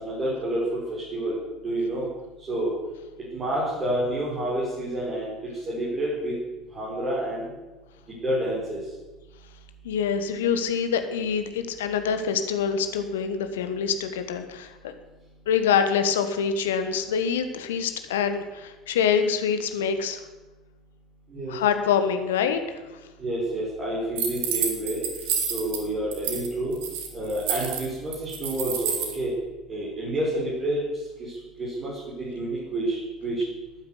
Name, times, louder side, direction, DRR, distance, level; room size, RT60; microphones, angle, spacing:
voice 1, 0.0-1.4 1.6-2.1 2.5-2.7 3.3-6.3 6.7-7.5 8.2-8.8 21.3-21.6 23.2-25.0 25.5-26.8 27.1-29.3 29.7-30.8 31.2-33.4, right 1 dB, 30° right, -6 dB, 6.1 m, -29 dB
voice 2, 9.8-14.9 15.5-20.2 21.5-22.8, left 7 dB, 70° left, 9 dB, 1.4 m, -25 dB
sound 1, 24.2-25.8 26.1-26.5 26.7-29.1, right 7 dB, 60° right, 2.4 m, -29 dB
13.0 x 9.5 x 8.4 m, 1.1 s
figure-of-eight pair, 65°, 0 cm